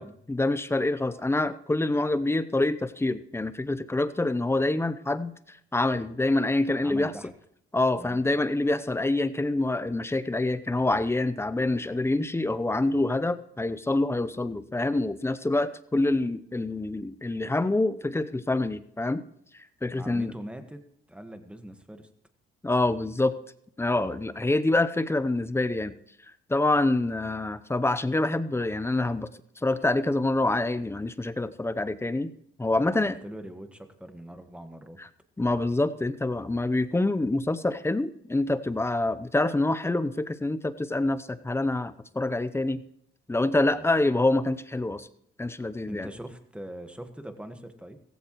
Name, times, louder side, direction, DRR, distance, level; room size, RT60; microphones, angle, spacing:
voice 1, 0.3-7.1 7.7-19.2 19.8-20.3 22.6-23.3 23.8-25.9 26.5-29.3 29.6-32.3 32.6-33.2 35.4-42.8 43.3-45.1 45.4-46.1, left 2 dB, 10° left, 13 dB, 0.7 m, -26 dB
voice 2, 6.8-7.3 8.0-8.2 19.9-22.1 32.8-35.0 43.7-44.0 45.9-48.0, right 1 dB, 5° right, 7 dB, 1.5 m, -42 dB
15.5 x 15.0 x 3.1 m, 0.72 s
cardioid pair, 90°, 20 cm